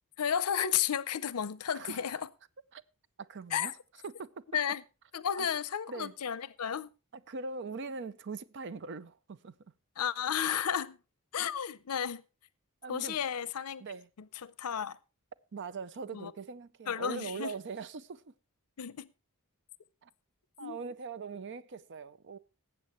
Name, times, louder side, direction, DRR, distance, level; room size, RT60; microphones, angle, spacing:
voice 1, 0.2-2.2 3.5-3.7 4.5-4.8 5.1-6.9 10.0-11.0 11.3-12.2 12.9-13.8 14.4-15.0 16.1-16.3 16.9-17.5 18.8-19.1 20.6-20.8, left 8 dB, 80° left, 0.6 m, -32 dB
voice 2, 1.7-2.2 2.7-2.8 3.2-3.7 4.0-4.3 5.4-5.5 5.9-6.1 7.3-9.5 12.8-13.2 13.8-14.1 15.5-18.2 20.0-20.1 20.6-22.4, right 4 dB, 55° right, 0.6 m, -41 dB
19.0 x 8.2 x 3.1 m
head